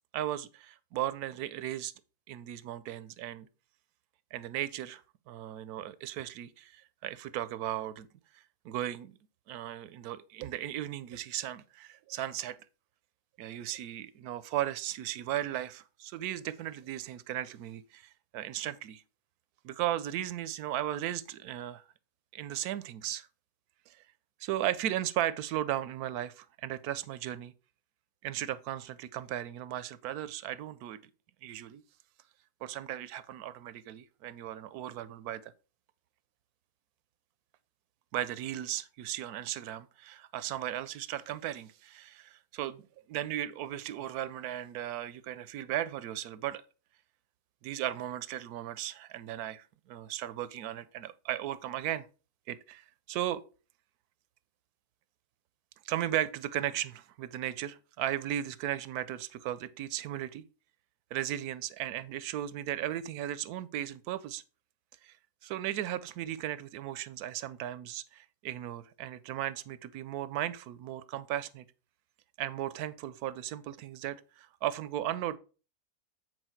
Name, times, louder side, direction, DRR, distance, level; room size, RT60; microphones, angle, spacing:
voice 1, 0.1-1.9 2.3-3.5 4.3-8.1 8.3-9.2 9.5-12.6 13.4-19.0 19.6-21.8 22.3-23.3 23.9-24.0 24.4-27.5 28.2-31.0 31.4-31.8 32.6-35.5 38.1-42.8 43.1-46.6 47.6-52.1 52.5-53.4 55.8-60.4 61.1-64.4 65.0-65.2 65.4-71.6 72.4-75.4, right 12 dB, 80° right, 1.1 m, -36 dB
8.1 x 4.5 x 4.4 m
omnidirectional pair, 1.6 m